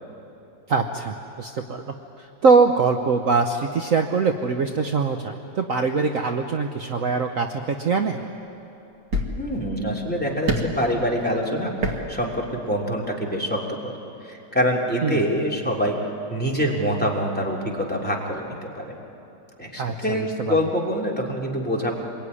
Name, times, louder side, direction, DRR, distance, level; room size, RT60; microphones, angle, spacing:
voice 1, 0.7-1.8 2.2-8.2 15.0-15.2 19.8-20.6, right 4 dB, 55° right, 5 dB, 1.2 m, -22 dB
sound 1, 7.5-7.6 8.6-8.7 9.1-9.7 10.5-10.8 11.8-12.1 12.4-12.5, right 1 dB, 75° right, 2.7 m, -26 dB
voice 2, 9.3-13.9 14.2-16.0 16.3-18.9 19.6-21.9, equal, 5° left, -2 dB, 3.2 m, -25 dB
26.0 x 22.0 x 9.8 m, 2.9 s
omnidirectional pair, 1.9 m